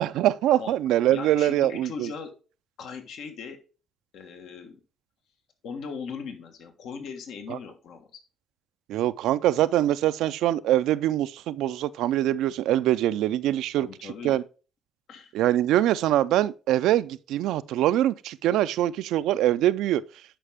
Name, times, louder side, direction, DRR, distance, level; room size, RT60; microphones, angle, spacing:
voice 1, 0.0-2.1 7.5-7.6 8.9-13.9 14.2-14.4 15.3-20.0, right 13 dB, 90° right, 0.4 m, -23 dB
voice 2, 1.1-2.3 2.8-3.6 4.1-4.8 5.6-8.2 13.7-14.4 15.1-15.3, left 5 dB, 80° left, 1.4 m, -39 dB
10.0 x 5.1 x 3.5 m
cardioid pair, 90°, 0 cm